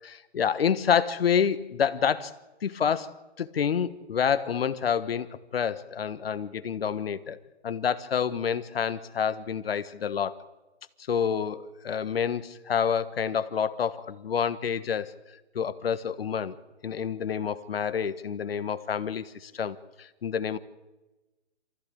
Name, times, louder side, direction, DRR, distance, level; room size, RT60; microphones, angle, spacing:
voice 1, 0.0-2.3 2.6-5.3 5.5-7.4 7.6-10.3 11.1-15.1 15.5-16.5 16.8-20.6, left 7 dB, 60° left, 13 dB, 1.4 m, -28 dB
27.5 x 14.5 x 8.6 m, 1.1 s
hypercardioid pair, 155°, 33 cm